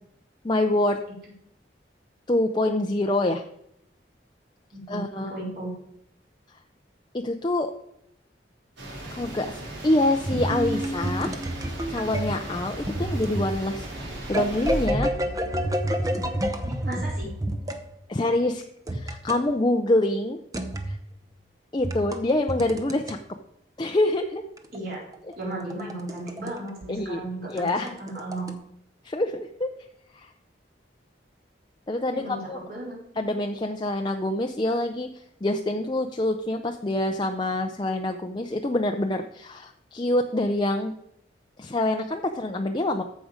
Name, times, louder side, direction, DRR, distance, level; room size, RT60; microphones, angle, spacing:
voice 1, 0.4-1.0 2.3-3.4 4.9-5.3 7.1-7.7 9.1-11.3 11.9-15.1 18.1-18.6 18.9-20.4 20.9-21.0 21.7-23.2 23.8-24.4 26.9-27.2 27.5-27.9 29.0-29.7 30.1-30.3 31.9-32.6 33.2-35.1 35.4-40.9 41.6-43.0, left 1 dB, 25° left, 4 dB, 0.5 m, -26 dB
voice 2, 4.7-5.7 16.7-17.3 24.7-25.0 25.4-28.5 32.1-32.4 32.7-33.2, right 2 dB, 55° right, -4 dB, 4.0 m, -35 dB
sound 1, 8.8-14.9, right 1 dB, 80° right, 3.1 m, -38 dB
sound 2, 10.3-17.8 18.9-19.4 20.5-21.0 21.8-23.1 24.6-26.5 26.8-26.9 27.5-28.5, right 1 dB, 20° right, 0.8 m, -29 dB
14.0 x 5.2 x 5.1 m, 0.75 s
head